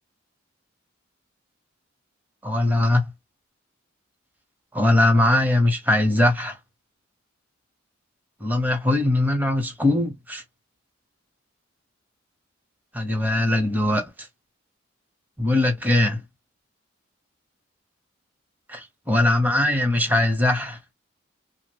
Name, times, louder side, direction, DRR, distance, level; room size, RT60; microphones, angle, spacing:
voice 1, 2.4-3.0 4.7-6.6 8.4-10.4 12.9-14.3 15.4-16.2 18.7-18.8 19.1-20.8, left 1 dB, 10° right, 0.9 m, -21 dB
3.1 x 2.0 x 3.4 m
head